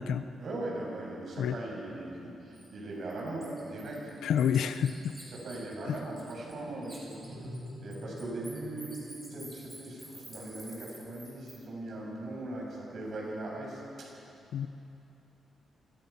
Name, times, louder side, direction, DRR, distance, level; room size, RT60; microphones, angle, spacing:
voice 1, 0.4-4.0 5.3-7.2 7.8-9.0 9.3-14.1, right 2 dB, 50° right, -2 dB, 7.7 m, -39 dB
Bird, 2.5-2.7 3.1-6.6 6.8-11.6, right 1 dB, 10° right, 5.8 m, -50 dB
voice 2, 4.2-5.2 5.9-6.0 14.5-14.7, left 8 dB, 90° left, 10 dB, 1.0 m, -28 dB
sound 1, 6.2-11.5, equal, 30° right, 3.0 m, -48 dB
30.0 x 24.0 x 6.0 m, 2.9 s
wide cardioid pair, 180°, 0 cm